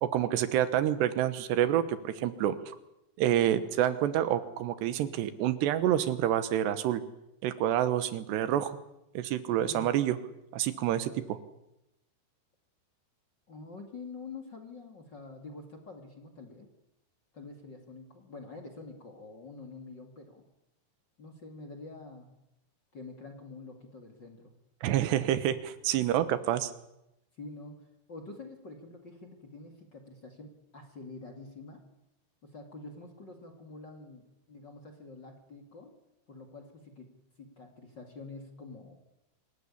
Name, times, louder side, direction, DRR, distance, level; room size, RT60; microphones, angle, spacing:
voice 1, 0.0-2.8 3.2-7.0 7.4-8.8 9.2-10.2 10.5-11.4 24.8-26.7, right 11 dB, 85° right, 12 dB, 3.3 m, -28 dB
voice 2, 9.6-10.0 13.5-16.7 17.3-20.4 21.2-22.3 22.9-24.5 27.4-31.8 32.4-35.9 36.3-37.1 37.4-39.0, left 3 dB, 35° left, 5 dB, 2.3 m, -47 dB
26.0 x 14.0 x 9.9 m, 0.88 s
omnidirectional pair, 4.8 m